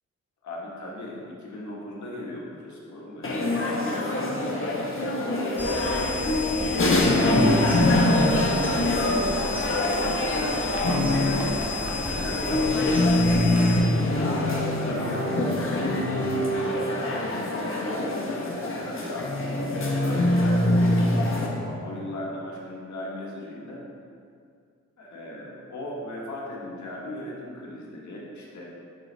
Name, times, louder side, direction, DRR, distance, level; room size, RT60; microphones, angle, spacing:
voice 1, 0.4-5.9 6.3-11.5 12.1-18.4 18.7-19.5 20.0-21.3 21.6-23.8 25.0-28.6, left 1 dB, 75° left, -4 dB, 1.5 m, -38 dB
sound 1, 3.2-21.5, left 1 dB, 45° left, 1.1 m, -24 dB
sound 2, 5.6-13.8, left 3 dB, 5° right, 1.0 m, -33 dB
9.6 x 3.9 x 3.4 m, 2.2 s
cardioid pair, 65°, 29 cm